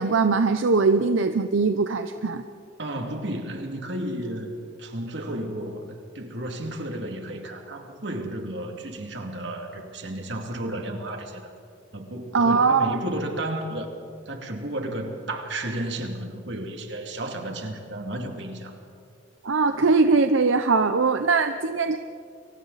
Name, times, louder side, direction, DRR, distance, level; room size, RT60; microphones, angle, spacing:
voice 1, 0.0-2.4 12.3-13.0 19.4-22.0, right 4 dB, 85° right, 8 dB, 0.7 m, -21 dB
voice 2, 2.8-11.5 11.9-13.9 14.3-18.8, right 1 dB, 60° right, 3 dB, 2.6 m, -33 dB
29.5 x 23.5 x 4.1 m, 2.3 s
head